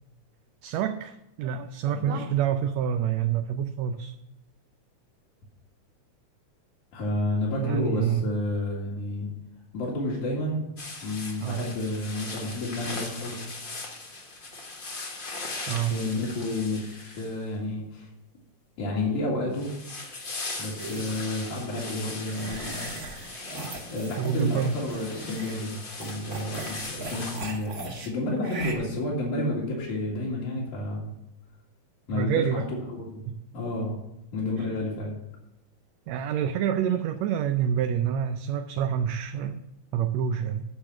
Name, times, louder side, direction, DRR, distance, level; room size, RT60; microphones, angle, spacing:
voice 1, 0.6-4.1 7.6-8.3 11.4-11.7 15.6-15.9 24.2-24.8 32.1-32.7 33.3-33.4 34.6-34.7 36.1-39.6 39.9-40.6, right 8 dB, 75° right, 7 dB, 1.8 m, -27 dB
voice 2, 6.9-9.3 9.7-10.6 11.0-13.4 15.9-18.1 18.8-19.7 20.6-22.8 23.9-27.7 28.0-31.1 32.1-33.2 33.5-34.0 34.3-35.1, left 1 dB, 85° left, -5 dB, 3.5 m, -30 dB
sound 1, 10.8-17.6 19.5-27.5, left 3 dB, 50° left, 0.6 m, -39 dB
sound 2, 20.8-21.2 22.3-25.6 26.0-28.1 28.4-28.7, right 2 dB, 35° right, 1.9 m, -39 dB
10.5 x 6.6 x 5.9 m, 0.91 s
omnidirectional pair, 3.3 m